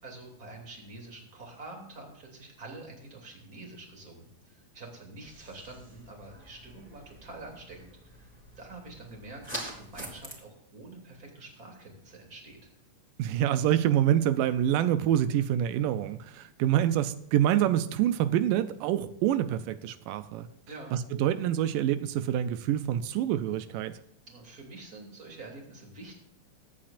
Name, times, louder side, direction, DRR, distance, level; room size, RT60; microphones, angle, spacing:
voice 1, 0.0-12.7 20.7-20.9 24.3-26.2, right 2 dB, 25° right, 1 dB, 3.1 m, -47 dB
sound 1, 5.2-10.3, right 1 dB, 5° right, 3.0 m, -45 dB
voice 2, 13.2-20.5 20.9-23.9, right 11 dB, 85° right, 12 dB, 2.3 m, -26 dB
22.0 x 8.6 x 2.6 m, 0.74 s
omnidirectional pair, 3.7 m